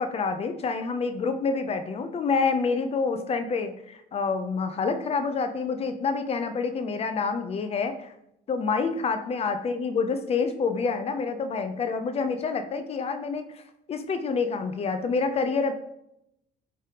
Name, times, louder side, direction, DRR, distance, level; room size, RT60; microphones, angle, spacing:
voice 1, 0.0-8.1 8.5-13.5 13.9-15.7, left 4 dB, 35° left, 8 dB, 0.5 m, -27 dB
4.8 x 3.3 x 2.9 m, 0.79 s
cardioid pair, 110°, 17 cm